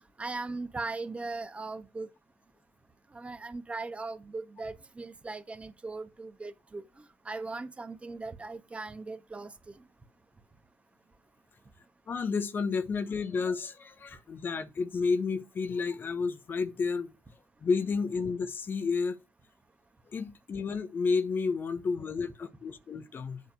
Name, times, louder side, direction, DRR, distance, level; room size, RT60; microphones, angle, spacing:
voice 1, 0.2-2.1 3.1-6.8 7.2-9.7, right 3 dB, 20° right, 1.6 m, -39 dB
voice 2, 12.1-17.1 17.6-19.2 20.1-23.4, left 4 dB, 40° left, 1.1 m, -31 dB
8.5 x 4.3 x 6.8 m
figure-of-eight pair, 50°, 6 cm